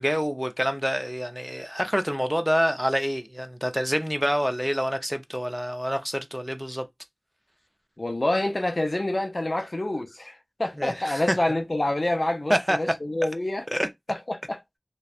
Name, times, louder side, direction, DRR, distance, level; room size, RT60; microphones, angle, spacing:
voice 1, 0.0-6.9 10.8-11.4 12.5-12.8 13.7-13.9, equal, 5° right, 0.4 m, -26 dB
voice 2, 8.0-13.7 14.1-14.6, left 1 dB, 55° left, 0.4 m, -27 dB
2.6 x 2.1 x 2.3 m
wide cardioid pair, 40°, 0 cm